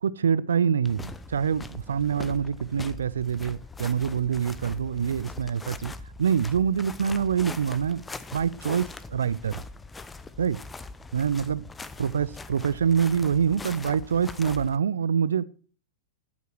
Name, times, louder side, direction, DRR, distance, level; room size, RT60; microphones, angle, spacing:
voice 1, 0.0-5.9 6.2-8.0 8.3-9.6 10.4-10.6 11.1-11.6 12.0-15.4, right 7 dB, 70° right, 0.6 m, -25 dB
sound 1, 0.8-14.8, left 3 dB, 10° left, 0.8 m, -41 dB
12.5 x 8.2 x 6.1 m
figure-of-eight pair, 95°, 0 cm